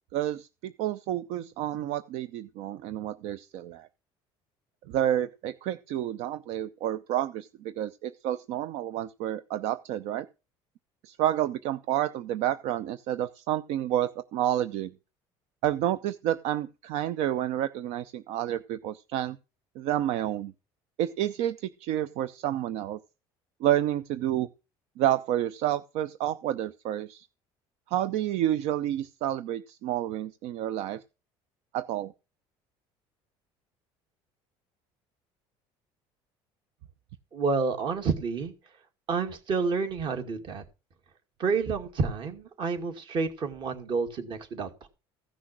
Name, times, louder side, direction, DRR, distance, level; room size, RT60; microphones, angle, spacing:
voice 1, 0.1-3.9 4.9-10.3 11.0-14.9 15.6-19.4 19.8-20.5 21.0-23.0 23.6-24.5 25.0-27.3 27.9-31.0 31.7-32.1, right 12 dB, 75° right, 0.7 m, -29 dB
voice 2, 37.3-38.5 39.1-40.6 41.4-44.9, right 4 dB, 45° right, 2.3 m, -29 dB
15.5 x 6.3 x 6.0 m
cardioid pair, 130°, 11 cm